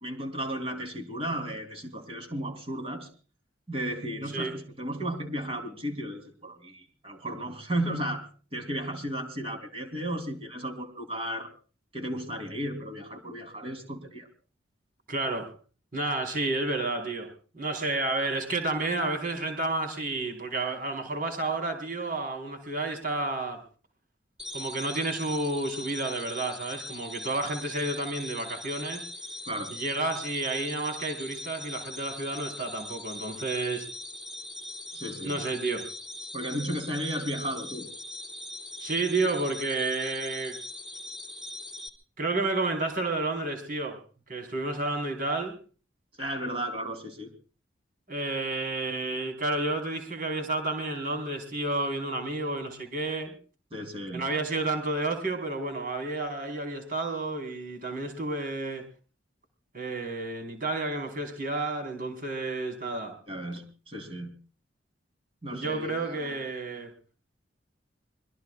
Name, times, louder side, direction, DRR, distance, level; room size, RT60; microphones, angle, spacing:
voice 1, 0.0-3.1 3.7-11.5 11.9-14.3 29.5-29.7 34.9-35.4 36.3-37.9 46.2-47.3 53.7-54.3 63.3-64.4 65.4-66.4, right 1 dB, 30° right, 3.7 m, -34 dB
voice 2, 15.1-15.5 15.9-23.6 24.5-29.0 29.7-33.9 35.2-35.9 38.8-40.6 42.2-44.0 44.3-45.6 48.1-53.3 54.1-58.8 59.7-63.2 65.5-66.9, right 2 dB, 45° right, 4.7 m, -31 dB
sound 1, 24.4-41.9, left 1 dB, 5° right, 1.4 m, -41 dB
26.0 x 21.5 x 2.5 m
head